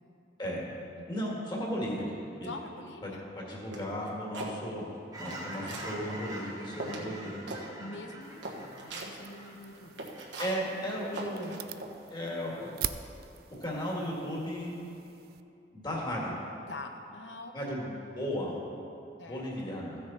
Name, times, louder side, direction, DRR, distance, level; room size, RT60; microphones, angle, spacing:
voice 1, 1.1-2.1 2.4-2.5 3.0-4.9 5.2-7.6 10.4-11.6 12.1-12.7 13.6-14.7 15.7-16.3 17.5-18.6 19.3-20.0, equal, 25° left, -4 dB, 2.1 m, -35 dB
voice 2, 2.4-3.2 7.8-10.1 16.7-17.8 19.2-19.5, left 2 dB, 90° left, 4 dB, 1.0 m, -45 dB
sound 1, 3.7-4.5 5.0-5.9 6.4-6.5 6.8-7.1 7.5-7.6 8.0-8.1 8.4-9.1 9.7-11.9, right 2 dB, 80° right, 1.4 m, -40 dB
Fowl / Chirp tweet, 5.1-11.0 11.4-11.6, right 1 dB, 20° right, 1.5 m, -45 dB
sound 2, 8.2-15.4, right 10 dB, 55° right, 0.4 m, -44 dB
15.5 x 6.6 x 4.2 m, 2.7 s
head